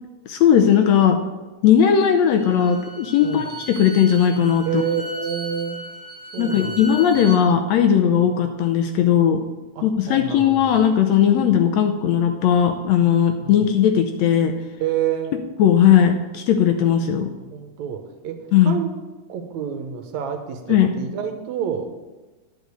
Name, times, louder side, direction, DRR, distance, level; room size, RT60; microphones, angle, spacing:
voice 1, 0.3-1.2 1.6-4.8 6.4-9.4 9.8-14.5 15.6-17.3 18.5-18.8 20.7-20.9, left 9 dB, 75° left, 5 dB, 1.7 m, -17 dB
Bowed string instrument, 2.0-7.4, right 1 dB, 45° right, 1.8 m, -37 dB
voice 2, 4.7-5.8 6.3-7.2 9.8-10.9 13.4-13.7 14.8-15.3 17.5-18.9 19.3-21.9, right 9 dB, 70° right, 5 dB, 2.2 m, -28 dB
10.0 x 5.2 x 8.1 m, 1.2 s
omnidirectional pair, 3.5 m